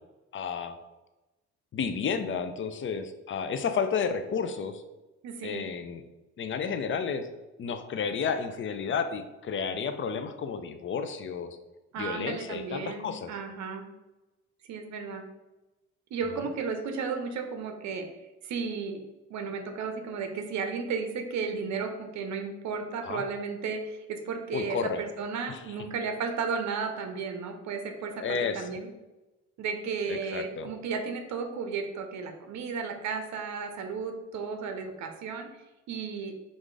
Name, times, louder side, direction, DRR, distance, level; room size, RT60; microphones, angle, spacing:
voice 1, 0.3-0.8 1.7-4.8 5.4-6.0 6.4-7.3 7.6-11.6 12.0-13.3 23.0-23.2 24.5-25.0 25.5-25.6 28.2-28.8 30.1-30.7, left 6 dB, 40° left, 9 dB, 0.5 m, -31 dB
voice 2, 5.2-5.7 11.9-13.9 14.7-15.2 16.1-18.1 18.4-19.0 19.3-28.9 29.6-35.5 35.9-36.3, right 5 dB, 65° right, 6 dB, 0.7 m, -34 dB
4.7 x 2.6 x 3.8 m, 1.1 s
cardioid pair, 90°, 30 cm